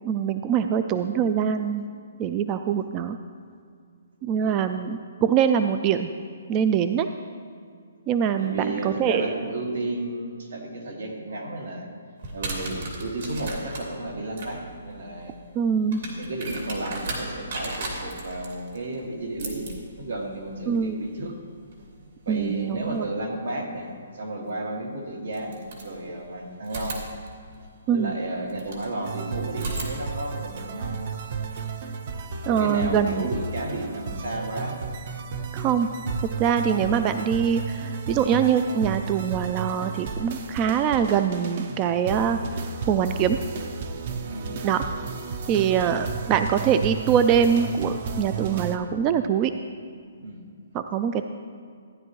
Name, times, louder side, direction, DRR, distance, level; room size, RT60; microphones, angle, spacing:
voice 1, 0.0-1.9 2.2-3.2 4.2-6.1 6.5-7.1 8.1-9.3 15.6-16.0 20.7-21.0 22.3-23.1 27.9-28.1 32.5-33.3 35.5-35.9 36.4-42.4 42.9-43.4 44.6-44.8 45.5-49.5 50.7-51.3, right 8 dB, 20° right, 9 dB, 0.3 m, -23 dB
voice 2, 8.4-11.9 12.3-15.3 16.0-19.7 20.0-21.3 22.2-27.0 27.9-31.1 32.5-34.8 44.2-44.6 50.2-50.4, right 2 dB, 80° right, 0 dB, 2.2 m, -33 dB
sound 1, 12.2-23.0 24.5-24.6 25.3-26.3 26.6-28.9 29.5-31.6, right 2 dB, 60° right, 2.5 m, -38 dB
sound 2, 29.0-48.8, right 5 dB, 40° right, 0.7 m, -33 dB
15.0 x 9.8 x 3.1 m, 2.2 s
hypercardioid pair, 160°, 0 cm